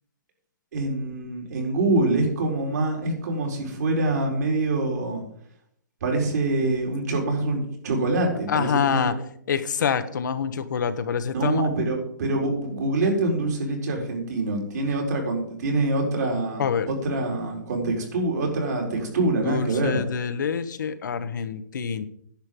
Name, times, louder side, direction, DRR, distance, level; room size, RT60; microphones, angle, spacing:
voice 1, 0.7-5.2 6.0-9.2 11.3-20.0, right 2 dB, 60° right, 0 dB, 4.4 m, -25 dB
voice 2, 8.5-9.1 9.5-11.6 16.6-16.9 19.4-22.0, left 7 dB, 70° left, 10 dB, 1.2 m, -26 dB
10.5 x 6.5 x 7.8 m, 0.67 s
hypercardioid pair, 160°, 10 cm